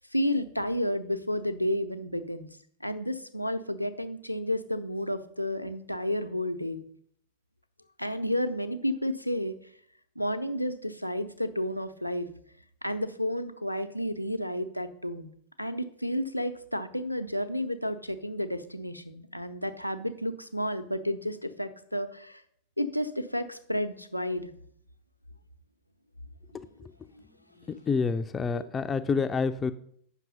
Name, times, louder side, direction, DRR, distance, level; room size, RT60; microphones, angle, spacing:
voice 1, 0.1-2.5 2.8-6.8 8.0-9.6 10.2-12.3 12.8-15.3 15.6-22.4 22.8-24.5 26.5-26.6 27.1-27.2 27.6-27.8 28.5-28.7, left 1 dB, 90° left, 7 dB, 0.7 m, -31 dB
voice 2, 27.7-29.7, left 5 dB, 20° left, 8 dB, 0.5 m, -28 dB
9.0 x 5.9 x 5.5 m, 0.64 s
figure-of-eight pair, 90°, 0 cm